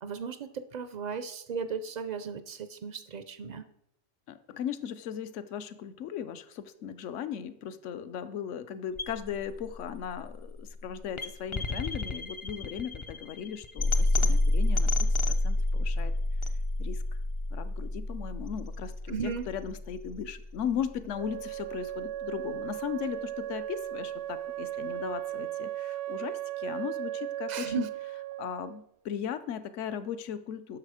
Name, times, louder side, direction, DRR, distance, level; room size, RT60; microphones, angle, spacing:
voice 1, 0.0-3.7 19.1-19.5 27.5-27.9, right 6 dB, 55° right, 12 dB, 0.4 m, -35 dB
voice 2, 4.3-16.1 16.8-17.0 17.5-27.9 28.4-30.8, left 8 dB, 70° left, 12 dB, 1.0 m, -37 dB
sound 1, 9.0-21.0, left 2 dB, 45° left, 0.3 m, -30 dB
Wind instrument woodwind instrument, 21.1-28.8, right 13 dB, 75° right, 0.9 m, -36 dB
9.7 x 6.5 x 4.9 m, 0.76 s
omnidirectional pair, 1.3 m